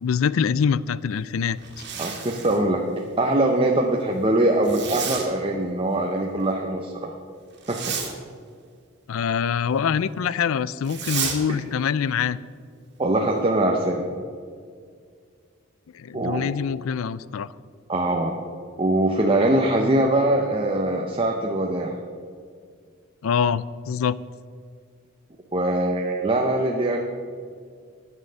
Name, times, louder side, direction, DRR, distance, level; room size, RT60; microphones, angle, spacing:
voice 1, 0.0-1.6 9.1-12.4 15.9-17.5 23.2-24.2, left 7 dB, 70° left, 19 dB, 0.4 m, -24 dB
Zipper (clothing), 1.6-2.6 4.6-5.3 7.6-8.1 10.8-11.4, right 7 dB, 55° right, 2.1 m, -31 dB
voice 2, 2.0-2.8 3.2-7.1 7.7-7.8 11.5-11.6 13.0-14.1 16.1-16.4 17.9-18.4 18.8-22.0 25.5-27.0, right 1 dB, 25° right, 1 dB, 0.7 m, -22 dB
9.6 x 9.0 x 6.7 m, 2.1 s
head